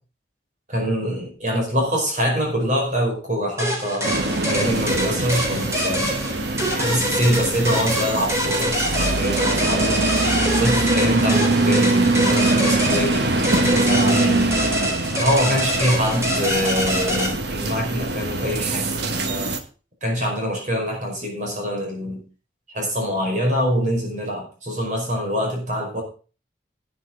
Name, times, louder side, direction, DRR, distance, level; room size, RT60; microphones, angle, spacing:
voice 1, 0.7-6.1 6.7-10.0 10.5-14.6 15.2-19.5 20.0-22.2 22.7-26.0, equal, 40° right, 1 dB, 5.1 m, -25 dB
sound 1, 3.6-17.3, equal, 15° right, 3.8 m, -25 dB
sound 2, 4.0-19.6, right 2 dB, 65° right, 1.4 m, -23 dB
12.0 x 10.5 x 3.9 m, 0.36 s
head